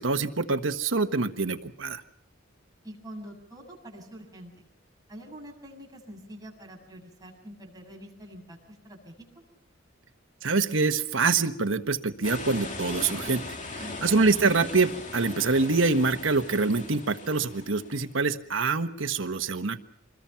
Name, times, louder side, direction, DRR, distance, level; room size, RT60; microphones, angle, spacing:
voice 1, 0.0-2.0 10.4-13.4 14.0-19.8, right 4 dB, 85° right, 8 dB, 1.3 m, -25 dB
voice 2, 2.8-4.7 5.1-9.3 13.8-14.2, equal, 20° right, -1 dB, 7.2 m, -45 dB
sound 1, 12.2-18.1, left 2 dB, 40° left, 2.4 m, -39 dB
26.5 x 21.5 x 5.8 m, 0.73 s
head